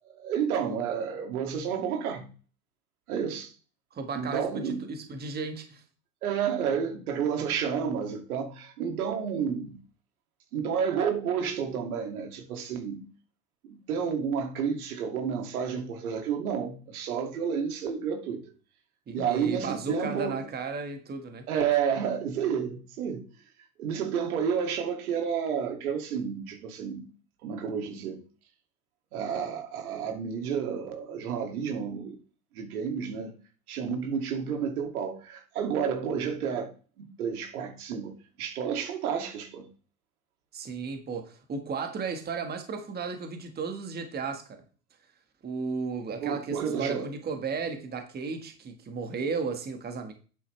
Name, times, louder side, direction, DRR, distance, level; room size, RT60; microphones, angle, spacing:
voice 1, 0.1-2.3 3.1-3.5 4.1-4.8 6.2-9.8 10.5-13.0 13.6-18.4 19.1-20.5 21.5-23.2 23.8-27.1 27.4-28.2 29.1-32.2 32.5-33.3 33.7-36.7 37.0-38.1 38.4-39.7 46.2-47.1, right 7 dB, 75° right, 2.6 m, -30 dB
voice 2, 3.9-5.8 19.1-21.5 40.5-44.6 45.4-50.1, right 4 dB, 20° right, 1.7 m, -34 dB
9.5 x 8.2 x 3.4 m
hypercardioid pair, 110°, 44 cm